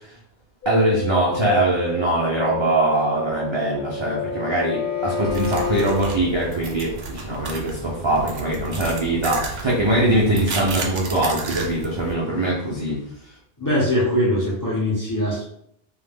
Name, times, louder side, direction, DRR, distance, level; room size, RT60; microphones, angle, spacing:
sound 1, 0.6-10.0 10.3-11.2 11.5-12.4 12.8-12.9, left 2 dB, 55° left, 0.9 m, -33 dB
voice 1, 0.7-13.0, right 1 dB, 45° right, -5 dB, 0.3 m, -22 dB
Bowed string instrument, 2.9-6.1, left 8 dB, 80° left, 0.9 m, -30 dB
sound 2, 5.3-12.1, right 4 dB, 70° right, 0.8 m, -32 dB
voice 2, 13.6-15.4, left 1 dB, 25° left, -5 dB, 0.5 m, -21 dB
2.3 x 2.1 x 3.4 m, 0.73 s
omnidirectional pair, 1.2 m